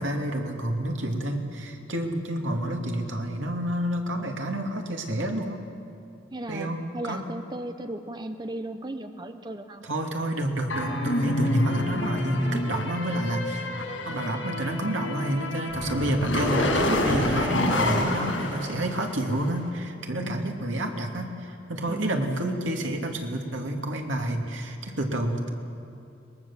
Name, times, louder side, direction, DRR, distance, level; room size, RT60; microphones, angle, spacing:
voice 1, 0.0-5.6 6.5-6.8 7.0-7.2 9.8-13.7 14.1-25.5, right 1 dB, 85° right, 3 dB, 2.4 m, -29 dB
voice 2, 6.3-9.9 20.2-20.5 21.9-22.2, right 1 dB, 25° right, 8 dB, 0.8 m, -36 dB
sound 1, 10.7-19.4, left 1 dB, 85° left, 5.9 m, -27 dB
23.0 x 20.5 x 7.2 m, 2.7 s
head